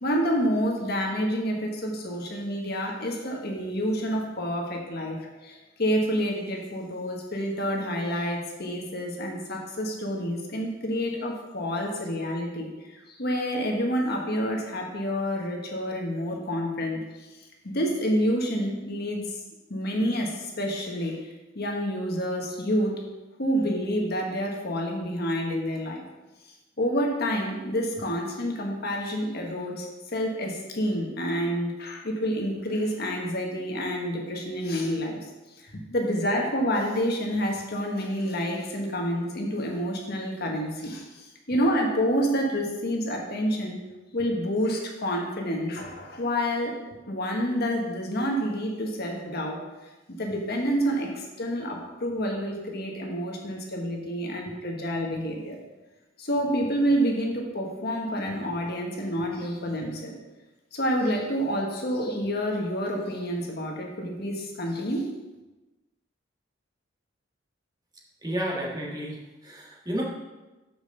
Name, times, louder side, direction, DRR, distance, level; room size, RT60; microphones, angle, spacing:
voice 1, 0.0-17.3 17.6-19.4 19.7-23.0 23.4-26.0 26.4-35.2 35.6-43.8 44.1-46.7 47.1-49.6 50.1-55.6 56.2-60.2 60.7-65.1, equal, 55° left, 0 dB, 1.4 m, -28 dB
voice 2, 68.2-70.0, equal, 20° right, -3 dB, 1.5 m, -31 dB
6.1 x 5.4 x 6.5 m, 1.1 s
head